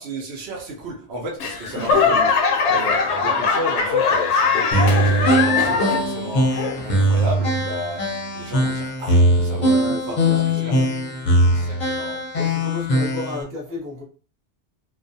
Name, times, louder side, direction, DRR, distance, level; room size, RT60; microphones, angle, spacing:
voice 1, 0.0-10.2 10.4-10.7 11.5-12.3, right 1 dB, 65° right, 0.8 m, -33 dB
Laughter / Clapping / Crowd, 1.4-6.2 6.5-7.0 7.6-7.7, left 5 dB, 75° left, 0.8 m, -20 dB
sound 1, 4.7-13.4, equal, 45° left, 0.7 m, -20 dB
voice 2, 9.6-10.9 12.3-14.0, left 3 dB, 15° right, 0.7 m, -33 dB
2.3 x 2.2 x 2.6 m
omnidirectional pair, 1.2 m